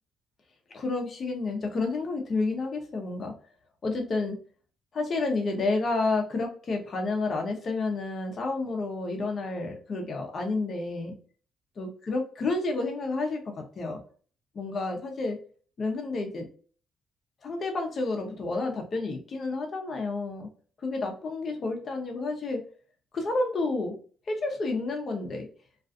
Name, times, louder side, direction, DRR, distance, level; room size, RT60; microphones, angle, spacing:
voice 1, 0.7-3.3 3.8-4.4 4.9-11.1 11.8-14.0 14.5-15.4 15.8-16.5 17.4-20.5 20.8-22.6 23.1-24.0 24.3-25.5, left 3 dB, 45° left, 3 dB, 0.7 m, -30 dB
2.4 x 2.3 x 2.5 m, 0.43 s
cardioid pair, 90°, 0 cm